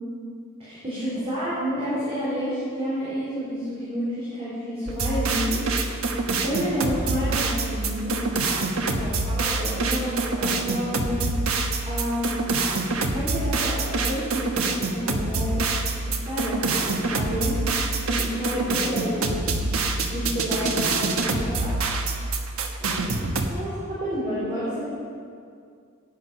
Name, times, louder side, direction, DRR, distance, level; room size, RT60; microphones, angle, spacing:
voice 1, 0.6-5.6 6.4-8.2 8.9-11.3 11.8-12.3 13.1-15.6 16.1-17.6 18.1-19.4 20.1-21.8 23.5-24.8, equal, 30° right, -10 dB, 3.9 m, -29 dB
sound 1, 4.9-23.5, right 3 dB, 70° right, 1.2 m, -26 dB
16.5 x 9.8 x 5.4 m, 2.3 s
head